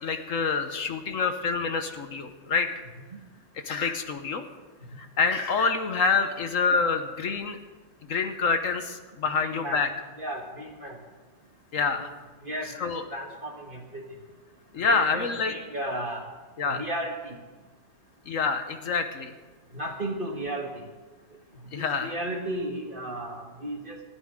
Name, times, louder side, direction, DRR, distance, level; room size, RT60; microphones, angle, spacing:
voice 1, 0.0-2.7 3.6-4.4 5.0-7.6 8.1-9.9 11.7-12.1 12.8-13.0 14.7-15.5 16.6-16.8 18.3-19.3 21.7-22.1, left 5 dB, 50° left, 7 dB, 1.2 m, -27 dB
voice 2, 9.3-9.8 10.2-11.0 11.9-12.1 12.4-14.0 14.9-16.2 16.6-17.3 19.7-20.8 21.7-24.0, right 1 dB, 30° right, 2 dB, 1.6 m, -34 dB
28.5 x 9.7 x 3.7 m, 1.3 s
omnidirectional pair, 2.0 m